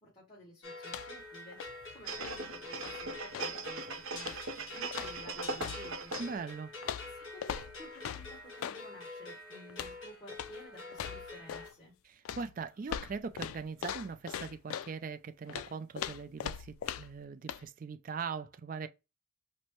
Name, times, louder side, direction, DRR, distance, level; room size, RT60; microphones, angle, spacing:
voice 1, 0.0-1.6 1.9-6.1 7.1-11.9, equal, 25° left, 1.4 m, -53 dB
sound 1, 0.6-11.7, left 3 dB, 65° left, 1.6 m, -47 dB
sound 2, 0.8-1.3 1.5-3.6 4.2-4.6 4.9-6.3 6.8-8.8 9.7-10.0 10.3-10.6 10.9-11.7 12.3-14.9 15.5-17.2 17.5-17.6, left 9 dB, 80° left, 0.3 m, -41 dB
sound 3, 2.1-6.5 6.8-6.9, right 3 dB, 75° right, 0.7 m, -40 dB
voice 2, 6.2-6.7 12.0-18.9, right 5 dB, 40° right, 0.3 m, -41 dB
4.4 x 2.1 x 3.0 m
head